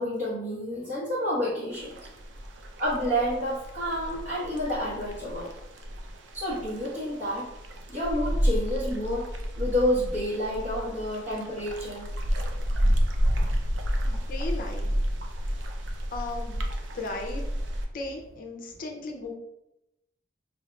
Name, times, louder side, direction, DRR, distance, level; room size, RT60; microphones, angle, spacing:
voice 1, 0.0-2.0 2.8-5.5 6.3-7.5 7.9-9.3 9.6-12.1, equal, 45° right, -9 dB, 1.0 m, -29 dB
sound 1, 1.7-17.9, equal, 75° right, 0.5 m, -30 dB
voice 2, 14.0-14.9 16.1-16.6 16.9-17.4 17.9-19.3, left 2 dB, 50° left, 2 dB, 0.5 m, -36 dB
4.8 x 2.7 x 2.3 m, 0.88 s
head